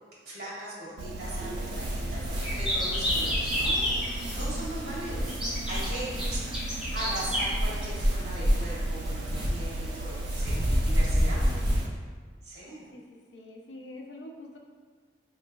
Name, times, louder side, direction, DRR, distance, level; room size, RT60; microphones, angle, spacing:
voice 1, 0.2-4.0 4.3-6.5 6.9-11.5 12.4-12.9, right 1 dB, 65° right, -7 dB, 1.4 m, -39 dB
sound 1, 1.0-11.9, right 1 dB, 90° right, 0.3 m, -36 dB
sound 2, 1.2-11.8, equal, 25° right, 0.7 m, -30 dB
sound 3, 2.4-4.5 5.3-7.5, equal, 5° right, 1.3 m, -30 dB
voice 2, 6.1-6.5 11.3-11.8 12.9-14.6, left 1 dB, 75° left, 0 dB, 0.5 m, -46 dB
4.9 x 3.1 x 2.2 m, 1.5 s
head